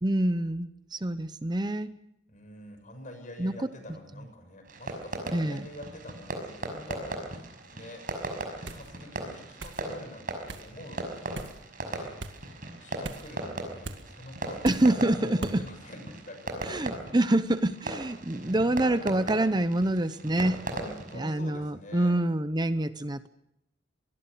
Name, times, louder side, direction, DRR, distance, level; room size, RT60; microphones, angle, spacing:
voice 1, 0.0-1.9 3.4-3.5 5.3-5.7 14.6-15.7 16.6-20.6 21.1-23.3, right 1 dB, 25° right, 12 dB, 0.7 m, -26 dB
voice 2, 2.3-8.0 8.6-11.4 11.8-12.2 12.8-16.7 18.3-18.7 19.0-19.3 20.6-22.1, left 1 dB, 45° left, 7 dB, 6.7 m, -46 dB
Fireworks, 4.6-21.2, right 2 dB, 50° right, 5.8 m, -38 dB
sound 1, 8.7-8.9 9.6-9.8 10.5-10.7 11.3-11.6 12.2-12.4 13.0-13.3 13.8-14.0 14.6-14.9 15.4-15.6, right 2 dB, 70° right, 2.0 m, -39 dB
25.0 x 20.5 x 6.8 m, 0.82 s
head